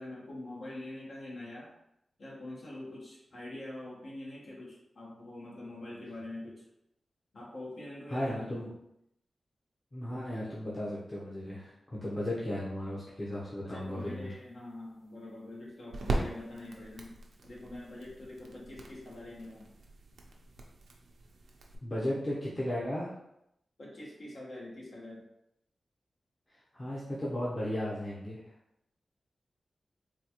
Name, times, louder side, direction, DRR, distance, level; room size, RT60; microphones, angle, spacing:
voice 1, 0.0-1.7 2.2-6.6 7.3-8.7 13.6-17.1 17.4-19.6 23.8-25.2, left 1 dB, 65° left, -4 dB, 1.1 m, -44 dB
voice 2, 8.1-8.7 9.9-14.3 21.8-23.1 26.7-28.4, left 1 dB, 30° left, -7 dB, 0.9 m, -35 dB
sound 1, 13.8-21.8, right 2 dB, 90° right, 0.5 m, -40 dB
4.0 x 2.3 x 2.9 m, 0.80 s
cardioid pair, 70°, 0 cm